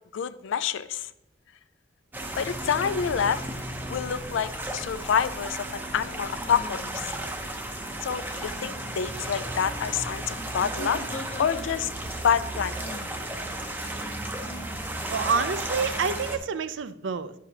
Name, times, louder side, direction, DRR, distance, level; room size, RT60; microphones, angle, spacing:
voice 1, 0.1-1.1 2.4-3.4 3.9-7.1 8.0-11.0 11.4-11.9 12.2-12.8, left 7 dB, 80° left, 15 dB, 0.4 m, -27 dB
sound 1, 2.1-16.4, right 1 dB, 10° right, 0.6 m, -34 dB
sound 2, 4.8-5.1 6.4-7.3 8.4-8.9 10.3-12.0 12.8-13.2 14.4-14.9, equal, 35° left, 0.6 m, -42 dB
voice 2, 15.1-17.3, right 5 dB, 75° right, 13 dB, 0.4 m, -28 dB
10.5 x 4.8 x 2.8 m, 0.80 s
head